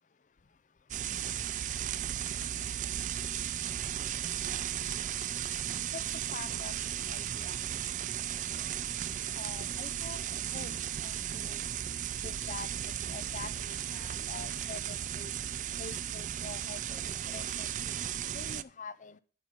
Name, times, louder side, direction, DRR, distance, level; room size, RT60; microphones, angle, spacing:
sound 1, 0.9-18.6, right 10 dB, 45° right, 0.4 m, -35 dB
voice 1, 6.3-6.8 7.1-7.6 9.3-10.2 10.5-11.6 12.2-15.3 15.8-19.2, left 4 dB, 45° left, 16 dB, 0.5 m, -46 dB
9.2 x 5.6 x 5.9 m, 0.40 s
head